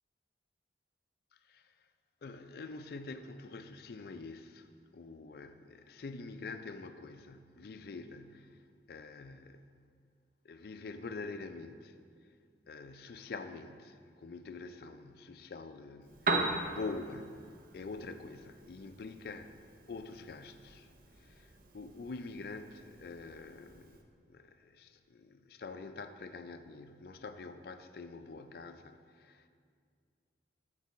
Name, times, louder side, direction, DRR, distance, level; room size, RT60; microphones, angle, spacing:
voice 1, 1.3-1.8 2.2-4.7 4.9-8.6 8.9-9.6 10.4-12.0 12.7-19.5 19.9-24.0 24.3-29.5, left 3 dB, 55° left, 0.4 m, -46 dB
Piano, 16.0-24.0, right 2 dB, 50° right, 0.6 m, -40 dB
8.2 x 5.3 x 4.1 m
head